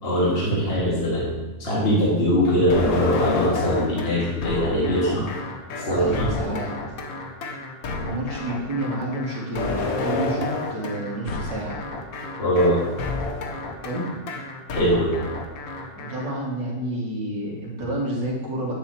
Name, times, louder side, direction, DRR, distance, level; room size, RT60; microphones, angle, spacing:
voice 1, 0.0-5.3 5.8-6.6 12.4-12.8 14.7-15.2, equal, 35° left, -6 dB, 2.2 m, -22 dB
sound 1, 2.7-16.3, left 3 dB, 60° left, 1.3 m, -30 dB
voice 2, 6.0-7.0 7.9-11.8 13.8-14.1 15.9-18.7, right 1 dB, 80° right, -4 dB, 2.6 m, -30 dB
9.5 x 7.5 x 3.0 m, 1.2 s
omnidirectional pair, 1.9 m